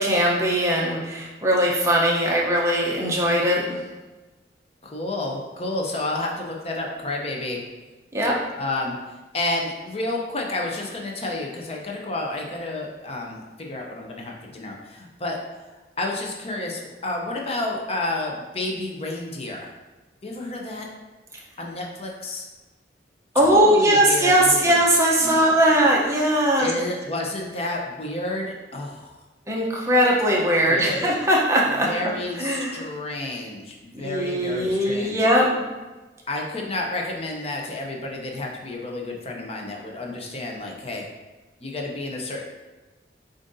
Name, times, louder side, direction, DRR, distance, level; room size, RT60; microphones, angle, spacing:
voice 1, 0.0-3.6 8.1-8.3 23.3-26.7 29.5-31.9 32.4-32.9 33.9-35.5, right 1 dB, 15° right, -3 dB, 0.6 m, -20 dB
voice 2, 4.8-7.6 8.6-9.0 9.3-15.4 16.0-19.7 20.2-20.9 21.6-22.5 23.4-24.8 25.2-25.6 26.6-29.1 30.7-31.2 31.8-35.3 36.3-41.0 41.6-42.4, left 2 dB, 35° left, 0 dB, 0.6 m, -30 dB
7.3 x 2.6 x 2.6 m, 1.2 s
head